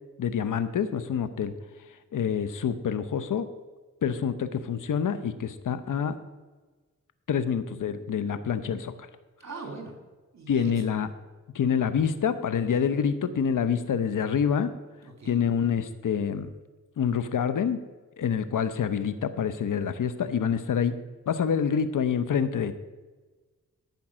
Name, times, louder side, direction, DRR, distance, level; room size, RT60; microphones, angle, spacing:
voice 1, 0.2-1.5 2.1-3.5 4.0-6.2 7.3-8.9 10.5-11.1 11.5-14.7 15.3-16.5 17.0-17.8 18.2-20.9 21.3-22.7, left 7 dB, 75° left, 12 dB, 0.8 m, -27 dB
voice 2, 9.4-10.0 10.3-10.7 15.0-15.4, right 3 dB, 55° right, 3 dB, 2.7 m, -41 dB
13.5 x 5.3 x 6.1 m, 1.3 s
cardioid pair, 70°, 32 cm